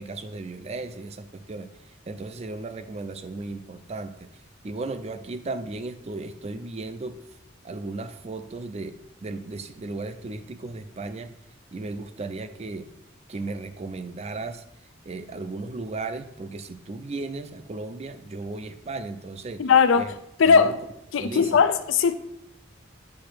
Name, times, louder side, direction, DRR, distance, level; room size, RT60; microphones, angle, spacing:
voice 1, 0.0-1.7 2.1-4.3 4.6-7.2 7.6-11.3 11.7-12.9 13.3-14.6 15.1-19.6 20.0-20.1 20.5-20.8 21.2-21.6, right 3 dB, 35° right, 0.4 m, -35 dB
voice 2, 19.6-20.1 20.4-20.8 21.1-22.1, left 6 dB, 80° left, 0.4 m, -19 dB
8.3 x 2.8 x 6.0 m
head